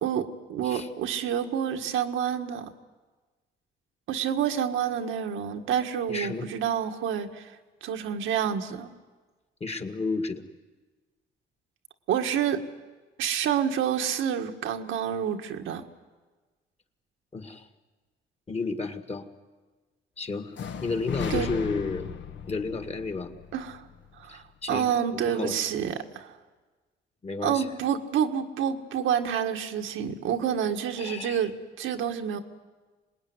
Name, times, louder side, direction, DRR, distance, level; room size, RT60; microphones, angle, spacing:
voice 1, 0.0-2.7 4.1-7.5 7.8-8.9 12.1-12.6 13.2-15.8 21.3-21.5 23.5-23.8 24.2-26.3 27.4-31.5 31.8-32.4, right 8 dB, 85° right, 5 dB, 1.7 m, -28 dB
voice 2, 6.1-6.5 9.6-10.5 17.3-17.7 18.5-19.3 20.2-20.6 20.8-22.1 22.5-23.3 24.3-24.9 25.2-25.6 27.2-27.7 31.0-31.5, left 3 dB, 30° left, 7 dB, 2.0 m, -32 dB
sound 1, 20.5-24.5, left 7 dB, 70° left, 1.5 m, -37 dB
26.0 x 20.5 x 9.6 m, 1.3 s
cardioid pair, 90°, 20 cm